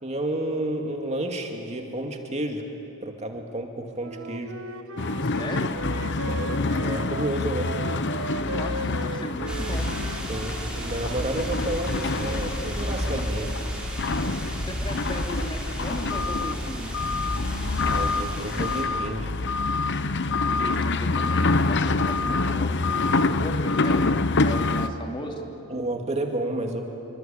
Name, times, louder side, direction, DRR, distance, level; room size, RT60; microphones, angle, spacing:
voice 1, 0.0-2.7 3.0-4.5 6.2-7.7 10.3-13.5 17.8-19.3 25.7-26.8, right 1 dB, 30° right, 3 dB, 2.4 m, -30 dB
Wind instrument woodwind instrument, 4.0-11.4, right 3 dB, 75° right, 1.2 m, -37 dB
sound 1, 5.0-24.9, left 3 dB, 55° left, 0.9 m, -27 dB
voice 2, 5.2-5.8 8.4-9.9 14.6-16.9 20.4-25.3, left 1 dB, 25° left, 2 dB, 2.7 m, -36 dB
sound 2, 9.5-18.8, equal, 5° right, 4.8 m, -32 dB
27.5 x 24.5 x 8.8 m, 2.9 s
head